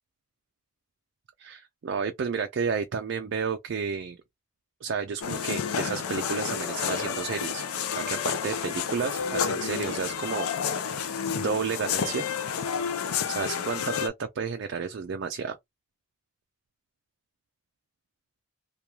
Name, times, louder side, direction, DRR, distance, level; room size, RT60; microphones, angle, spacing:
voice 1, 1.4-4.2 4.8-7.6 8.0-10.5 11.3-12.3 13.3-15.6, right 5 dB, 55° right, 0.4 m, -31 dB
sound 1, 5.2-14.1, left 7 dB, 85° left, 0.5 m, -30 dB
3.0 x 2.3 x 2.3 m
head